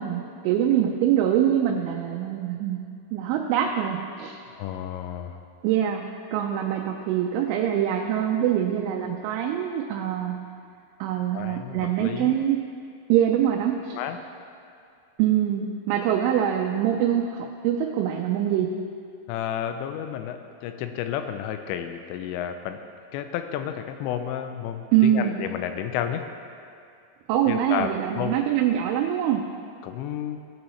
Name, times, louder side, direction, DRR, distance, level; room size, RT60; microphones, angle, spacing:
voice 1, 0.0-2.8 3.1-4.4 5.6-6.0 6.3-10.3 11.0-12.6 13.1-14.0 15.2-18.7 24.9-25.4 27.3-29.4, right 10 dB, 90° right, 1 dB, 3.1 m, -24 dB
voice 2, 4.5-5.4 11.3-12.3 13.9-14.2 19.3-22.8 23.1-26.3 27.5-28.4 29.8-30.4, left 9 dB, 85° left, 8 dB, 2.7 m, -31 dB
18.0 x 6.2 x 3.1 m, 2.4 s
omnidirectional pair, 5.4 m